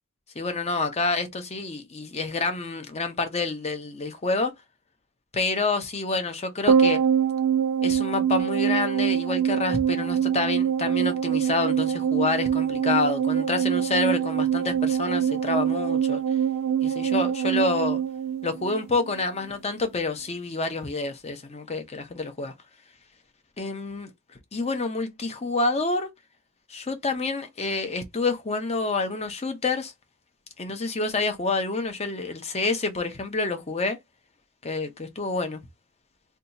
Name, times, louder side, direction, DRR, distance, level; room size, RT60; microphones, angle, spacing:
voice 1, 0.4-4.5 5.3-7.0 7.8-16.2 16.8-18.0 18.4-22.5 23.6-24.1 24.5-26.1 26.7-29.9 30.6-34.0 34.6-35.6, left 3 dB, 30° left, 0.7 m, -28 dB
sound 1, 6.7-19.2 19.4-19.5, right 8 dB, 80° right, 0.5 m, -24 dB
2.7 x 2.3 x 4.0 m
head